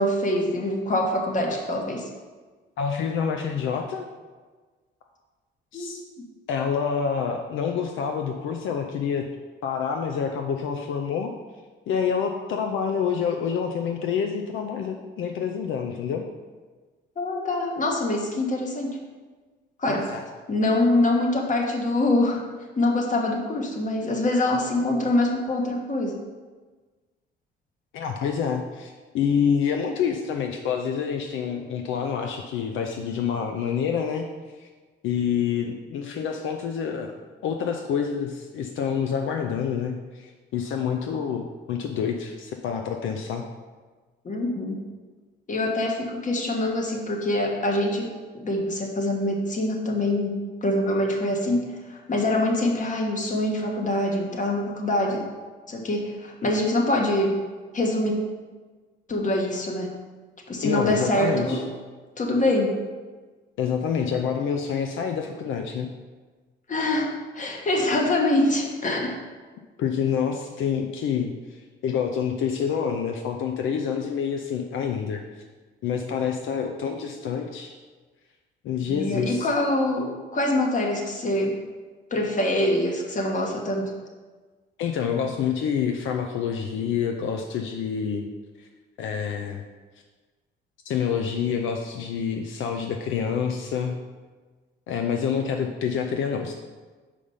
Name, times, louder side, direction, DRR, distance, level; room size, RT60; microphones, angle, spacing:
voice 1, 0.0-2.1 5.7-5.9 17.2-19.0 19.8-20.1 20.5-22.4 22.8-26.2 44.2-44.9 45.5-55.3 55.7-57.4 57.7-58.1 59.1-59.9 60.5-61.6 62.2-62.8 66.7-69.2 78.9-81.6 82.1-83.9, left 1 dB, 40° left, 1 dB, 1.3 m, -24 dB
voice 2, 2.8-4.1 5.7-6.0 6.5-9.3 9.6-11.3 11.9-16.3 19.9-20.2 27.9-34.2 34.6-34.7 35.0-43.5 60.6-61.6 63.6-65.9 69.8-75.2 75.8-77.7 78.6-79.5 84.8-88.3 88.6-88.7 89.0-89.6 90.8-94.0 94.9-96.5, left 7 dB, 80° left, 4 dB, 0.5 m, -27 dB
5.1 x 5.0 x 5.6 m, 1.4 s
cardioid pair, 90°, 20 cm